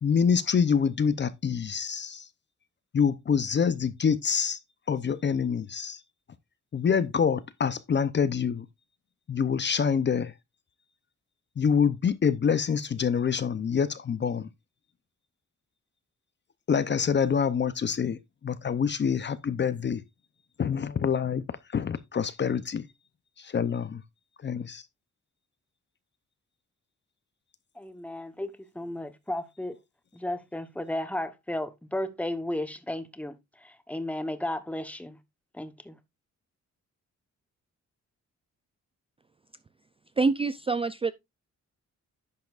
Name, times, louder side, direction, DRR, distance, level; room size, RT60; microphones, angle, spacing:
voice 1, 0.0-2.3 2.9-4.6 4.9-6.0 6.7-8.7 9.3-10.3 11.6-14.5 16.7-20.0 20.6-21.4 21.7-22.8 23.4-24.0 24.4-24.8, left 7 dB, 40° left, 0.6 m, -26 dB
voice 2, 27.8-29.8 30.1-35.2 35.5-36.0, left 1 dB, 5° left, 1.0 m, -34 dB
voice 3, 40.2-41.1, right 4 dB, 20° right, 0.4 m, -26 dB
10.5 x 7.5 x 2.4 m
wide cardioid pair, 135°, 29 cm